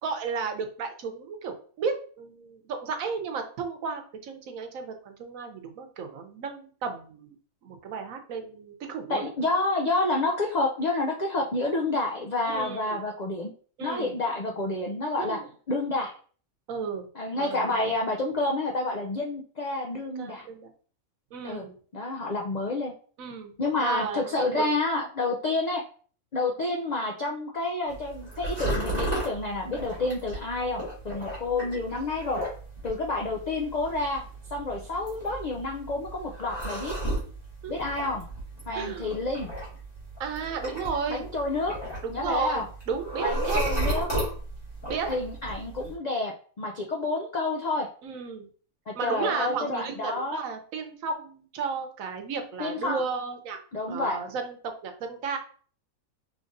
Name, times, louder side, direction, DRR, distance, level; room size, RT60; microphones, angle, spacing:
voice 1, 0.0-7.3 7.6-9.2 12.5-13.0 13.8-14.1 15.2-15.5 16.7-17.1 17.4-17.8 20.2-20.7 21.3-21.7 23.2-23.5 23.8-24.7 37.6-37.7 38.7-39.2 40.2-41.3 42.0-43.6 44.9-45.1 48.0-48.5 48.9-53.6 53.9-54.6 54.8-55.4, right 5 dB, 70° right, 5 dB, 1.1 m, -33 dB
voice 2, 9.1-13.5 13.8-15.4 15.7-16.2 17.1-20.5 21.4-21.6 21.9-22.9 23.6-25.8 26.3-32.4 32.8-34.2 34.5-36.9 37.7-38.2 38.7-39.5 41.1-41.8 42.1-42.7 43.2-44.1 45.1-47.9 48.9-50.4 52.6-53.0 53.7-54.2, left 2 dB, 85° left, 1 dB, 0.3 m, -29 dB
sound 1, 27.9-45.9, right 1 dB, 30° left, 1.9 m, -35 dB
5.1 x 3.3 x 2.6 m, 0.44 s
omnidirectional pair, 1.5 m